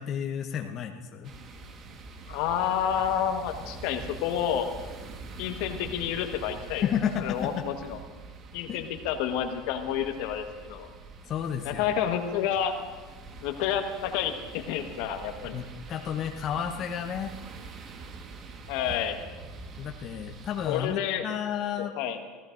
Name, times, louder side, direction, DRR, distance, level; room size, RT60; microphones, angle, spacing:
voice 1, 0.0-1.3 6.8-7.7 8.7-8.9 11.2-11.9 15.5-17.3 19.8-21.9, left 8 dB, 45° left, 2 dB, 1.0 m, -32 dB
sound 1, 1.2-20.9, right 4 dB, 40° right, 1.5 m, -45 dB
voice 2, 2.3-4.7 5.4-6.8 7.2-8.0 8.5-10.9 11.6-12.7 13.4-15.6 18.7-19.2 20.7-21.2 21.8-22.2, left 9 dB, 65° left, 6 dB, 1.4 m, -29 dB
26.5 x 15.5 x 2.6 m, 1.4 s
hypercardioid pair, 85°, 0 cm